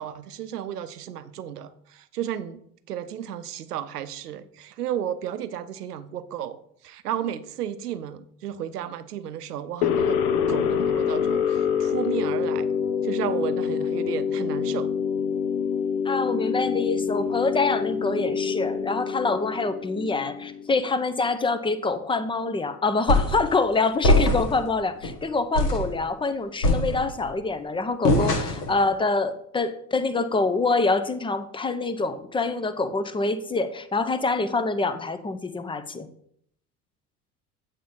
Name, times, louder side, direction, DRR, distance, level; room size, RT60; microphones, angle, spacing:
voice 1, 0.0-2.6 2.9-10.2 10.5-12.7 13.0-14.9, right 10 dB, 80° right, 13 dB, 0.6 m, -33 dB
sound 1, 9.8-20.7, left 7 dB, 65° left, 0.8 m, -26 dB
voice 2, 16.0-36.1, left 3 dB, 10° left, 11 dB, 0.5 m, -26 dB
sound 2, 23.1-23.5 24.0-24.6 25.0-25.2 25.5-25.9 26.6-27.3 28.0-28.8, left 1 dB, 80° left, 1.2 m, -21 dB
8.5 x 3.5 x 5.6 m, 0.68 s
figure-of-eight pair, 65°, 46 cm